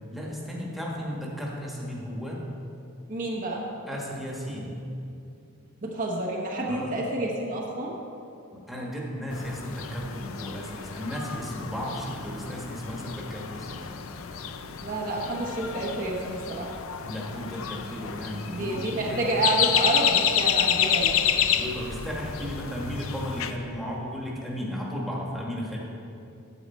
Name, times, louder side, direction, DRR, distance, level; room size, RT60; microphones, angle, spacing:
voice 1, 0.1-2.4 3.9-4.7 6.7-6.9 8.5-13.9 17.1-19.2 21.5-25.8, equal, ahead, -4 dB, 1.3 m, -34 dB
voice 2, 3.1-3.7 5.8-7.9 14.8-16.7 18.5-21.1, right 2 dB, 40° right, -2 dB, 0.9 m, -29 dB
sound 1, 9.3-23.5, left 9 dB, 80° left, 0.5 m, -29 dB
9.2 x 7.9 x 4.2 m, 2.6 s
head